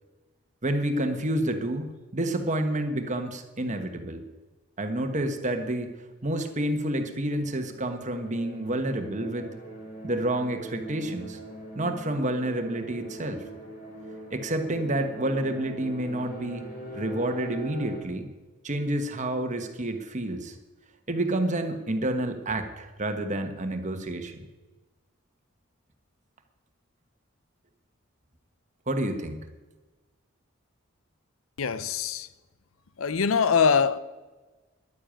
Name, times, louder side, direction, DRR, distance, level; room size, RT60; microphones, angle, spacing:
voice 1, 0.6-4.2 4.8-5.9 6.2-9.5 10.0-11.4 11.7-13.4 14.3-16.6 16.9-18.3 18.6-20.5 21.1-24.4 28.9-29.5, right 1 dB, 35° right, 1.3 m, -29 dB
sound 1, 7.0-18.0, equal, 45° left, 4.0 m, -42 dB
voice 2, 31.6-32.3 33.0-34.0, left 6 dB, 80° left, 0.6 m, -23 dB
11.0 x 10.0 x 8.8 m
head